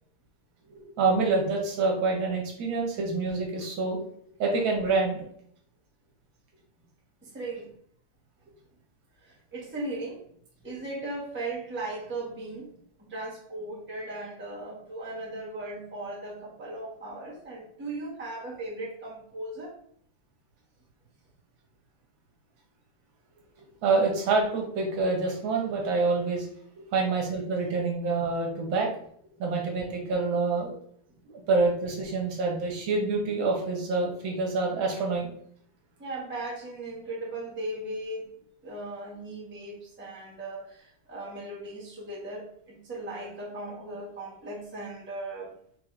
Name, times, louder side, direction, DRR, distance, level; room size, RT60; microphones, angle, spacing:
voice 1, 0.7-4.0 4.4-5.3 23.8-26.5 26.9-28.9 29.4-30.7 31.3-35.3, right 3 dB, 75° right, 0 dB, 1.7 m, -27 dB
voice 2, 7.2-7.7 9.2-10.2 10.6-19.8 36.0-38.3 38.6-45.5, right 2 dB, 10° right, -5 dB, 0.9 m, -37 dB
4.9 x 3.9 x 2.5 m, 0.64 s
omnidirectional pair, 2.2 m